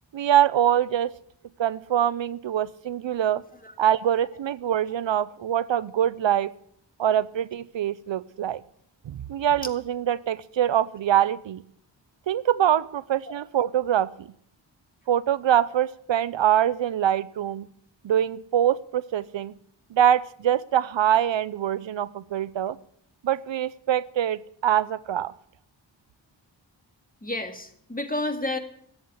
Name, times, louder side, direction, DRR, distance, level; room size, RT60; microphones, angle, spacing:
voice 1, 0.1-1.1 1.6-3.4 3.8-6.5 7.0-8.6 9.1-11.6 12.3-14.1 15.1-17.7 18.0-19.5 19.9-22.8 23.2-25.3, right 10 dB, 75° right, 18 dB, 0.6 m, -24 dB
voice 2, 27.2-28.6, left 2 dB, 20° left, 6 dB, 2.1 m, -30 dB
14.0 x 8.1 x 9.4 m, 0.68 s
wide cardioid pair, 60°, 45 cm